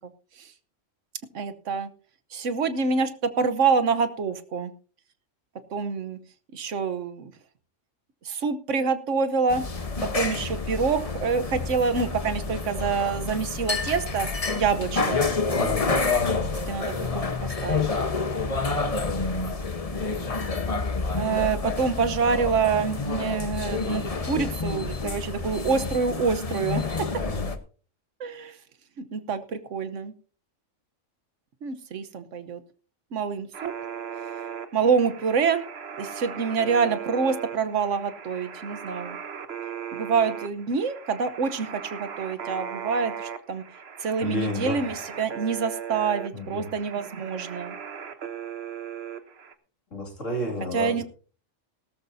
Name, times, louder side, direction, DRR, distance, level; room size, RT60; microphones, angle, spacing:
voice 1, 1.3-1.9 2.3-4.7 5.7-6.2 6.5-7.3 8.2-9.6 10.0-14.3 14.5-15.2 16.7-17.9 21.1-26.8 28.2-28.6 29.0-30.1 31.6-32.6 33.1-33.7 34.7-35.6 36.0-39.2 39.9-43.6 44.0-47.8 50.7-51.0, right 5 dB, 75° right, 11 dB, 1.3 m, -26 dB
sound 1, 9.5-27.6, left 4 dB, 30° left, 1.1 m, -28 dB
voice 2, 15.5-15.9 27.2-27.5 44.2-44.9 46.3-46.7 49.9-51.0, left 1 dB, 75° left, 1 dB, 2.9 m, -31 dB
sound 2, 33.5-49.5, right 8 dB, 55° right, 1.2 m, -38 dB
17.0 x 13.5 x 2.7 m, 0.40 s
omnidirectional pair, 1.3 m